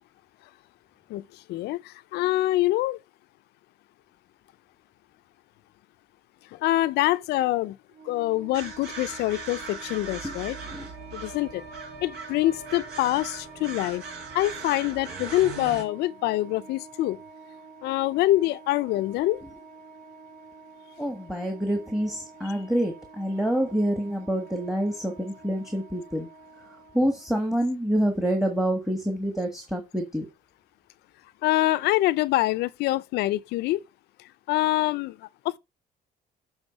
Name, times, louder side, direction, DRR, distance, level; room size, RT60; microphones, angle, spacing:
voice 1, 1.1-3.0 6.5-7.8 8.0-10.6 11.1-11.6 12.0-14.0 14.3-17.2 17.8-19.4 22.4-22.6 31.4-33.8 34.5-35.2 35.4-35.6, left 16 dB, 75° left, 0.5 m, -25 dB
Wind instrument woodwind instrument, 7.9-27.4, right 5 dB, 50° right, 4.7 m, -49 dB
sound 1, 8.5-15.8, right 4 dB, 75° right, 2.3 m, -39 dB
voice 2, 21.0-26.3 26.9-30.3, equal, ahead, 1.2 m, -27 dB
7.2 x 3.6 x 5.2 m
cardioid pair, 110°, 17 cm